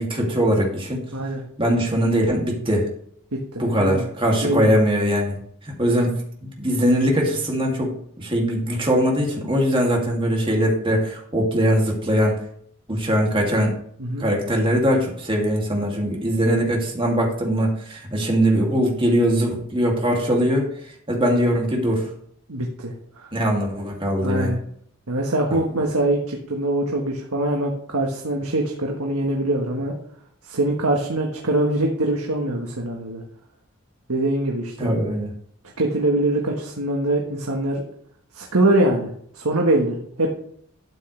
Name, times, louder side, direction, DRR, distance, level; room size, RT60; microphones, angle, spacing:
voice 1, 0.0-1.1 1.6-2.9 3.6-5.4 5.6-12.4 12.9-13.7 14.2-20.7 21.1-22.1 23.3-24.5 25.5-25.6 34.8-35.3, equal, 25° right, -1 dB, 2.6 m, -21 dB
voice 2, 1.1-1.4 3.3-4.1 4.4-4.7 14.0-14.3 22.5-23.3 24.2-24.6 25.1-29.9 30.5-33.2 34.1-34.9 35.8-37.8 38.3-39.1 39.3-40.4, right 1 dB, 80° right, 0 dB, 1.5 m, -23 dB
12.5 x 8.4 x 3.3 m, 0.65 s
head